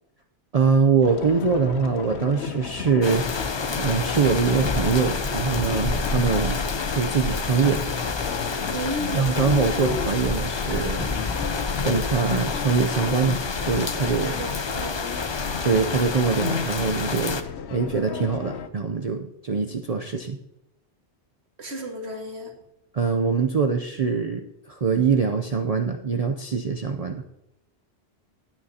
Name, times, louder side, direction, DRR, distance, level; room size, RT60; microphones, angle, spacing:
voice 1, 0.5-3.2 3.8-6.6 6.9-7.9 9.1-11.1 11.8-14.3 15.6-17.4 17.7-20.4 22.9-27.2, right 5 dB, 45° right, 4 dB, 0.6 m, -23 dB
sound 1, 1.0-18.7, left 7 dB, 75° left, 1.0 m, -34 dB
sound 2, 3.0-17.4, left 4 dB, 35° left, 0.4 m, -28 dB
voice 2, 8.7-9.3 14.2-15.0 21.6-22.5, right 1 dB, 65° right, 2 dB, 2.0 m, -33 dB
16.0 x 9.1 x 2.8 m, 0.88 s
omnidirectional pair, 1.2 m